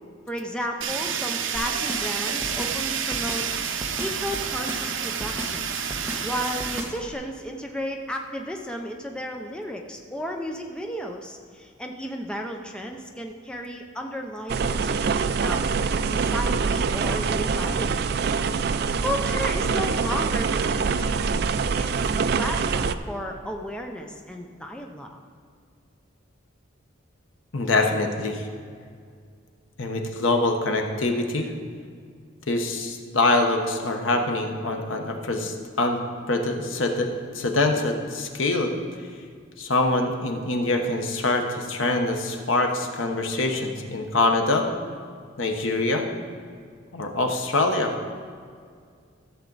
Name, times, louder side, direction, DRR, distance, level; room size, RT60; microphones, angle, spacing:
voice 1, 0.3-3.5 4.0-5.8 6.2-15.7 16.0-18.1 19.0-21.5 21.7-25.2, equal, 5° left, 2 dB, 0.6 m, -33 dB
Fire, 0.8-6.8, right 7 dB, 75° right, 0.7 m, -29 dB
sound 1, 1.5-7.1, right 1 dB, 10° right, 1.1 m, -35 dB
sound 2, 14.5-22.9, right 5 dB, 55° right, 0.3 m, -24 dB
voice 2, 27.5-28.5 29.8-31.5 32.5-36.0 36.3-37.1 37.3-38.7 39.6-44.7 45.4-46.1 46.9-48.0, left 2 dB, 80° left, 3 dB, 1.1 m, -24 dB
13.5 x 7.2 x 4.0 m, 2.1 s
head